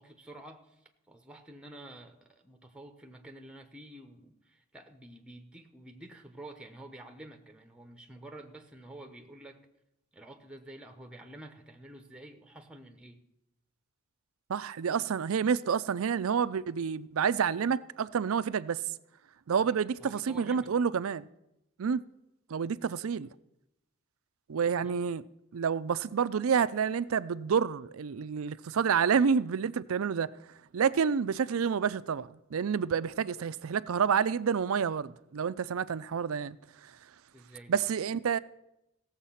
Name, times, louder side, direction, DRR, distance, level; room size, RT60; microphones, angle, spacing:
voice 1, 0.0-9.6 10.1-13.2 19.7-20.7 24.6-25.0 37.3-37.8, right 1 dB, 5° right, 0.9 m, -49 dB
voice 2, 14.5-18.8 19.5-21.3 21.8-22.0 22.5-23.3 24.5-25.2 25.5-30.3 30.7-36.6 37.7-38.4, right 6 dB, 85° right, 0.4 m, -29 dB
16.5 x 7.2 x 5.7 m
head